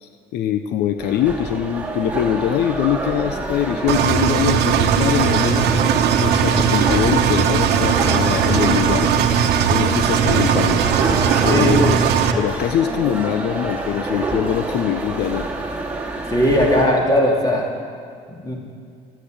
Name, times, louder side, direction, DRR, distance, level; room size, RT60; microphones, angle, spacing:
voice 1, 0.0-5.6 6.2-9.1 9.7-10.8 11.4-12.0 12.4-15.5, left 10 dB, 75° left, 9 dB, 0.7 m, -22 dB
sound 1, 1.0-16.9, right 2 dB, 10° right, 2.4 m, -27 dB
Engine, 3.9-12.3, right 8 dB, 80° right, 1.0 m, -18 dB
voice 2, 16.3-17.7 18.4-18.6, equal, 25° left, -1 dB, 3.3 m, -17 dB
13.0 x 10.0 x 8.6 m, 2.2 s
cardioid pair, 110°, 17 cm